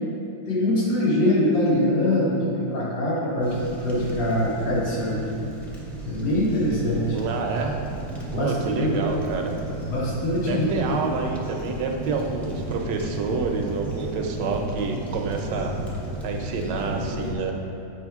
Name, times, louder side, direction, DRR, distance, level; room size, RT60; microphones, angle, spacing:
voice 1, 0.5-3.6 3.8-5.2 6.0-7.2 8.3-9.0 9.9-10.7, left 1 dB, 85° left, -5 dB, 2.1 m, -23 dB
sound 1, 3.4-17.3, right 1 dB, ahead, 0.6 m, -33 dB
voice 2, 7.1-7.8 8.3-9.5 10.5-15.8 16.2-17.5, right 4 dB, 75° right, 3 dB, 1.3 m, -28 dB
7.7 x 5.0 x 3.5 m, 2.6 s
omnidirectional pair, 2.0 m